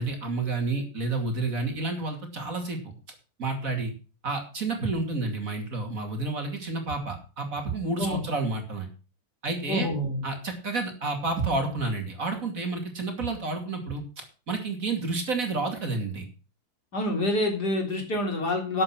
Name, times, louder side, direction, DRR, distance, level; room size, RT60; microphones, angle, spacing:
voice 1, 0.0-2.9 3.4-3.9 4.2-8.9 9.4-9.9 10.2-16.3, right 3 dB, 45° right, 4 dB, 2.9 m, -30 dB
voice 2, 9.7-10.2 16.9-18.8, left 1 dB, 55° left, 2 dB, 4.0 m, -27 dB
12.5 x 7.7 x 5.9 m, 0.35 s
omnidirectional pair, 2.1 m